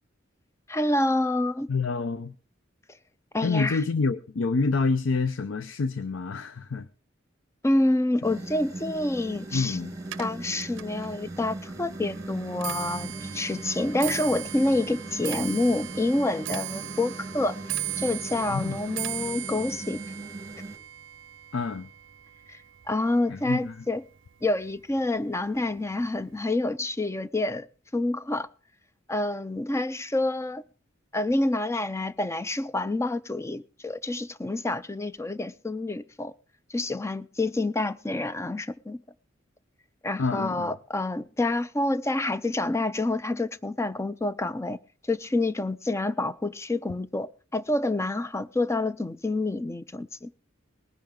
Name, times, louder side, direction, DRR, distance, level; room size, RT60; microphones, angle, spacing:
voice 1, 0.7-1.7 3.3-3.8 7.6-9.8 10.2-17.6 18.0-20.0 22.5-22.6 22.9-24.0 24.4-27.7 27.9-28.5 29.1-30.6 31.1-36.3 36.7-39.0 40.0-44.8 45.1-50.3, left 2 dB, 15° left, 0.5 m, -28 dB
voice 2, 1.7-2.3 3.4-6.9 8.3-8.4 9.5-10.0 18.5-18.8 21.5-21.9 23.3-23.8 40.2-40.7, left 4 dB, 75° left, 0.6 m, -27 dB
sound 1, 8.2-20.8, right 2 dB, 15° right, 1.5 m, -39 dB
Clock, 10.0-23.4 23.7-24.2 25.0-25.1 25.4-25.8 26.0-26.1, right 13 dB, 70° right, 0.5 m, -38 dB
19.5 x 10.5 x 3.7 m
head